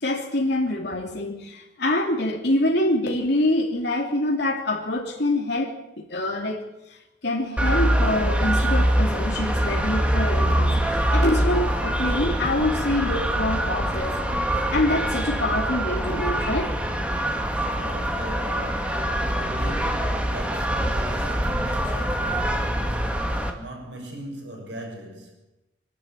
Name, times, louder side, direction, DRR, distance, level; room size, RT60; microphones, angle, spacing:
voice 1, 0.0-6.6 6.9-7.0 7.2-14.2 14.7-16.7, left 1 dB, 60° left, 2.9 m, -25 dB
sound 1, 7.6-23.5, right 1 dB, 5° right, 2.0 m, -24 dB
sound 2, 11.3-15.1, equal, 15° left, 1.2 m, -38 dB
voice 2, 17.7-25.3, right 1 dB, 70° right, 6.5 m, -39 dB
24.5 x 12.0 x 8.8 m
head